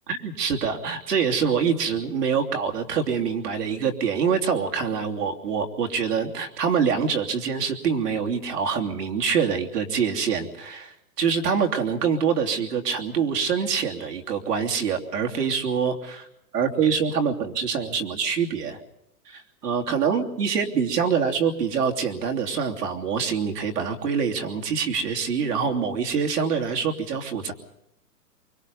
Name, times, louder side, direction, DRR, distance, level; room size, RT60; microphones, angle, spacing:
voice 1, 0.1-16.3 16.5-18.8 19.3-27.5, right 6 dB, 75° right, 3 dB, 3.1 m, -25 dB
24.5 x 24.5 x 5.4 m, 0.79 s
hypercardioid pair, 135°, 48 cm